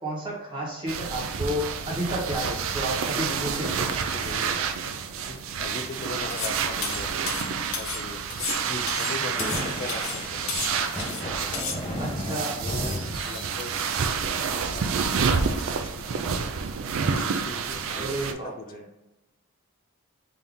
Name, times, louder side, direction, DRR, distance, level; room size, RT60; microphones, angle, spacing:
voice 1, 0.0-3.8 8.6-8.9 9.4-9.5 12.0-12.6 17.9-18.8, right 1 dB, 20° right, -4 dB, 1.2 m, -31 dB
sound 1, 0.9-18.3, right 6 dB, 70° right, 0.4 m, -29 dB
voice 2, 3.2-5.0 5.2-7.4 7.8-8.2 9.0-10.7 11.1-11.5 12.3-13.7 14.4-16.7 17.0-18.7, left 3 dB, 45° left, 6 dB, 0.4 m, -40 dB
sound 2, 6.3-6.6 6.8-8.0 8.3-9.6 9.9-10.2 10.5-11.2 11.5-11.8, left 5 dB, 75° left, 0.7 m, -32 dB
sound 3, 9.4-14.5, left 1 dB, 25° left, 0.9 m, -35 dB
3.5 x 2.7 x 3.6 m, 1.0 s
head